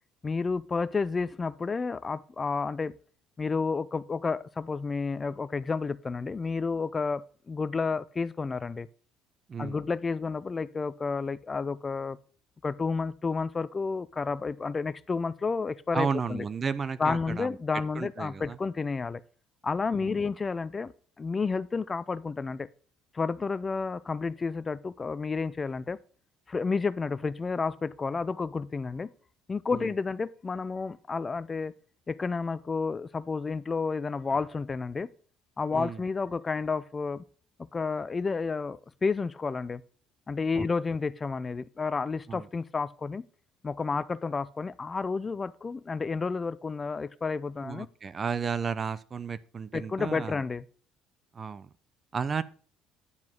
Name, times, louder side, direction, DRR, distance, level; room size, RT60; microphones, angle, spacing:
voice 1, 0.2-2.9 3.4-8.9 9.6-12.2 12.6-16.4 17.0-19.2 19.6-20.9 21.2-22.7 23.1-26.0 26.5-29.1 29.5-31.7 32.1-35.1 35.6-37.2 37.7-39.8 40.3-43.2 43.6-47.9 49.7-50.6, left 4 dB, 25° left, 0.4 m, -31 dB
voice 2, 9.5-9.8 15.9-17.6 17.9-18.6 19.9-20.2 29.7-29.9 35.7-36.0 40.5-40.7 42.3-42.5 47.6-50.4 51.3-51.7 52.1-52.4, right 6 dB, 35° right, 0.6 m, -33 dB
9.7 x 4.8 x 5.3 m
supercardioid pair, 80°, 0 cm